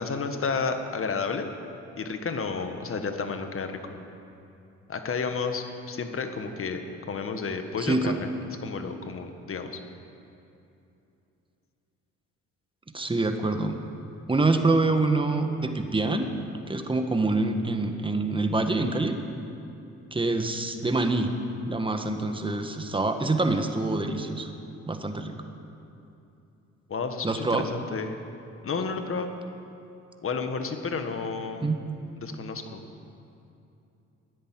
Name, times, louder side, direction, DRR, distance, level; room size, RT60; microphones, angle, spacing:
voice 1, 0.0-1.5 2.0-4.0 4.9-6.8 7.1-8.3 8.6-9.8 26.9-28.2 28.6-29.3 30.2-31.6 32.2-32.8, left 5 dB, 45° left, 6 dB, 1.6 m, -31 dB
voice 2, 7.8-8.2 12.9-13.8 14.3-16.3 16.7-19.1 20.1-21.3 21.7-24.5 24.9-25.3 27.2-27.6 31.6-31.9, right 2 dB, 15° right, 6 dB, 1.4 m, -25 dB
13.0 x 10.5 x 9.0 m, 2.8 s
cardioid pair, 90°, 30 cm